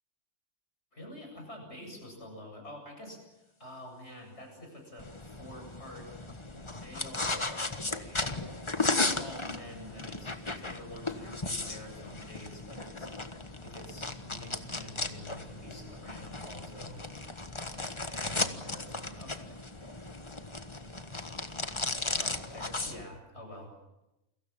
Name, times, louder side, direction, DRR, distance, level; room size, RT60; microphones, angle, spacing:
voice 1, 0.9-6.1 6.5-7.4 7.9-8.3 8.8-17.1 17.6-19.6 22.2-23.7, left 1 dB, 65° left, 2 dB, 8.4 m, -48 dB
sound 1, 5.0-23.0, left 2 dB, 25° left, 1.5 m, -36 dB
29.5 x 23.0 x 7.4 m, 0.96 s
omnidirectional pair, 1.2 m